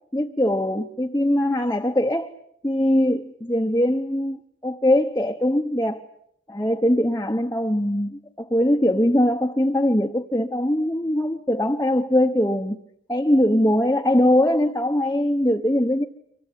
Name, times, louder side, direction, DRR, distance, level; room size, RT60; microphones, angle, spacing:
voice 1, 0.1-2.3 2.6-6.0 6.5-12.8 13.1-16.0, left 1 dB, 15° left, 1.0 m, -21 dB
25.0 x 24.5 x 8.3 m
head